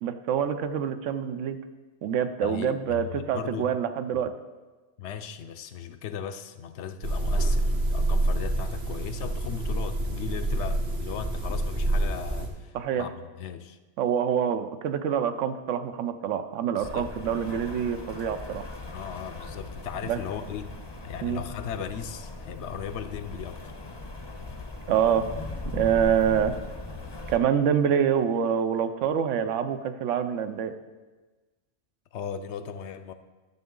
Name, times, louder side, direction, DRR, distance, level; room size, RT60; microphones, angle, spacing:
voice 1, 0.0-1.6 2.0-4.3 12.7-13.1 14.0-18.6 20.1-20.2 21.2-21.4 24.9-25.3 25.7-26.5 27.3-30.7, right 8 dB, 85° right, 10 dB, 1.0 m, -26 dB
voice 2, 2.4-3.8 5.0-13.1 13.4-13.8 16.7-17.1 18.9-20.7 21.0-23.6 32.1-33.1, left 8 dB, 75° left, 10 dB, 0.8 m, -37 dB
sound 1, 7.0-12.5, right 1 dB, 65° right, 1.5 m, -27 dB
Rain, 16.8-27.4, left 2 dB, 30° left, 0.5 m, -39 dB
11.5 x 6.9 x 3.7 m, 1.3 s
omnidirectional pair, 1.2 m